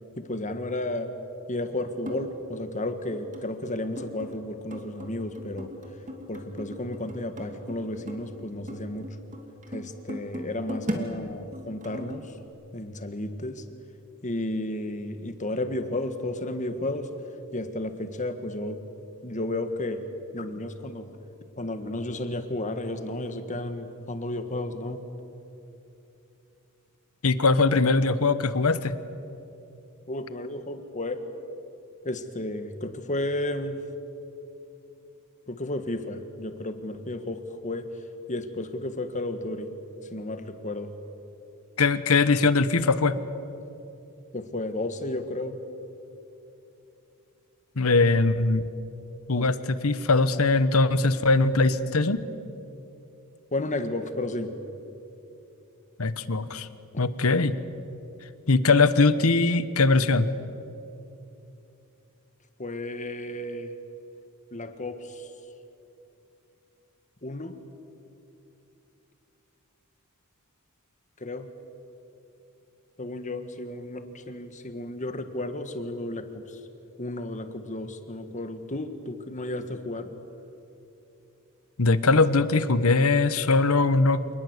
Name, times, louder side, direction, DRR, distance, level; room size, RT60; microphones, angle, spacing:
voice 1, 0.2-1.1 1.5-5.7 6.3-9.1 9.7-12.4 12.7-13.6 14.2-17.1 17.5-18.8 19.2-20.0 20.3-21.1 21.6-25.1 30.1-31.2 32.0-33.8 35.5-37.9 38.3-39.7 40.1-40.9 44.3-45.6 49.3-49.5 53.5-54.5 62.6-63.7 64.5-65.3 67.2-67.6 71.2-71.5 73.0-76.6 77.0-80.1, left 1 dB, 35° left, 8 dB, 1.7 m, -33 dB
sound 1, 2.1-2.3 3.1-3.7 4.0-4.4 4.7-8.4 8.7-11.1 11.5-12.4, equal, 35° right, 2.8 m, -37 dB
voice 2, 27.2-28.9 41.8-43.2 47.8-48.6 49.3-52.2 56.0-56.7 57.0-57.6 58.5-60.3 81.8-84.3, left 3 dB, 70° left, 14 dB, 1.1 m, -21 dB
27.5 x 20.0 x 8.2 m, 2.8 s
head